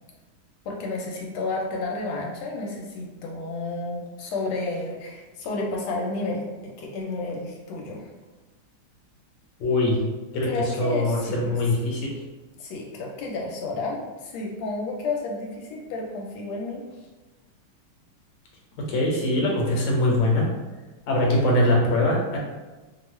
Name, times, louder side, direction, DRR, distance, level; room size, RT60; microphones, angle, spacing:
voice 1, 0.7-6.5 6.8-8.0 10.4-11.5 12.6-16.8, left 3 dB, 85° left, -1 dB, 1.4 m, -31 dB
voice 2, 9.6-10.0 10.3-10.5 10.8-12.1 18.8-20.5 21.1-22.4, left 1 dB, 65° left, -2 dB, 1.3 m, -22 dB
3.2 x 2.3 x 3.1 m, 1.2 s
omnidirectional pair, 2.3 m